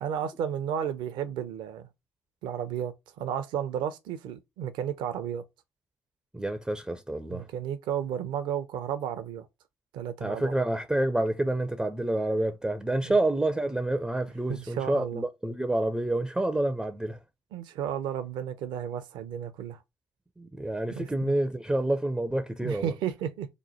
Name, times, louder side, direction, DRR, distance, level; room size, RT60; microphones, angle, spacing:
voice 1, 0.0-1.9 2.4-5.4 7.3-9.5 9.9-10.5 13.0-13.1 14.5-15.2 17.5-19.8 20.9-21.3 22.6-23.5, right 9 dB, 65° right, 0.5 m, -33 dB
voice 2, 6.3-7.5 10.2-17.2 20.4-22.9, right 1 dB, 5° right, 0.4 m, -28 dB
3.0 x 2.1 x 4.0 m
hypercardioid pair, 50°, 9 cm